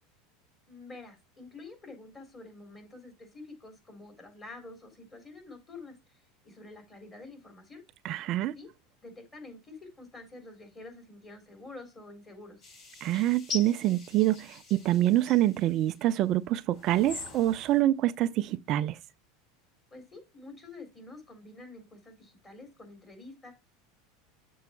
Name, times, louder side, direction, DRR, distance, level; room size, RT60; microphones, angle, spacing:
voice 1, 0.7-7.8 8.5-8.7 9.0-12.6 19.9-23.5, left 3 dB, 25° left, 3.8 m, -48 dB
voice 2, 8.0-8.6 13.0-19.0, right 14 dB, 50° right, 0.4 m, -26 dB
sound 1, 12.6-16.1 16.7-17.8, left 3 dB, 50° left, 3.9 m, -43 dB
6.9 x 4.6 x 4.4 m
hypercardioid pair, 105°, 0 cm